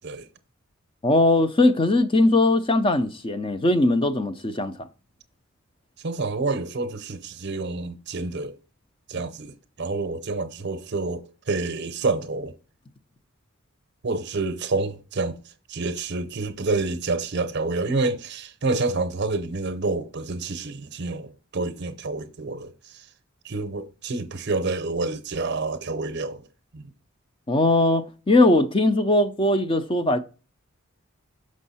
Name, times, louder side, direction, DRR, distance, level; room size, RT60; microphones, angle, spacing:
voice 1, 1.0-4.9 27.5-30.2, left 2 dB, 25° left, 0.5 m, -20 dB
voice 2, 6.0-8.5 9.1-12.5 14.0-15.4 15.7-23.1 23.4-26.4 26.7-26.9, right 3 dB, 55° right, 0.7 m, -28 dB
6.3 x 5.4 x 4.1 m
head